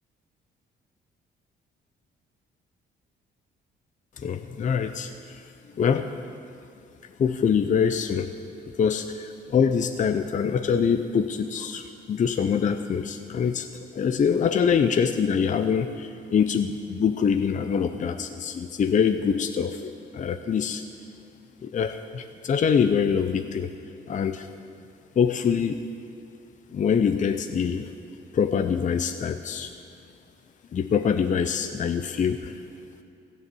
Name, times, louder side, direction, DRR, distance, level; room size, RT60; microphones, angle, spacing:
voice 1, 4.2-5.4 5.8-6.1 7.2-8.3 8.8-13.7 13.9-20.8 21.6-23.7 24.1-24.5 25.2-25.8 26.7-27.9 28.3-29.7 30.7-32.5, left 7 dB, 40° left, 9 dB, 0.5 m, -24 dB
16.0 x 7.0 x 7.7 m, 2.5 s
cardioid pair, 90°, 20 cm